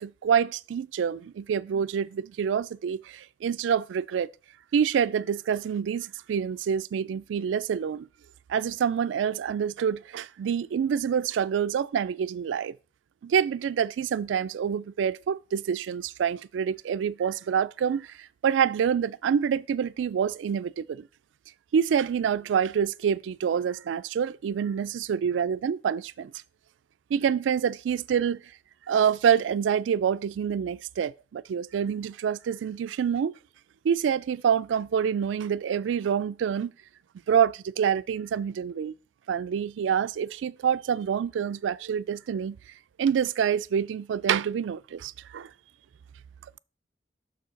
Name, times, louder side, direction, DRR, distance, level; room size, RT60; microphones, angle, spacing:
voice 1, 0.0-4.3 4.7-8.1 8.5-12.8 13.2-21.1 21.7-26.3 27.1-28.4 28.9-33.3 33.8-36.7 37.3-38.9 39.3-42.6 43.0-45.5, right 7 dB, 85° right, 0.3 m, -27 dB
6.4 x 4.6 x 5.0 m
head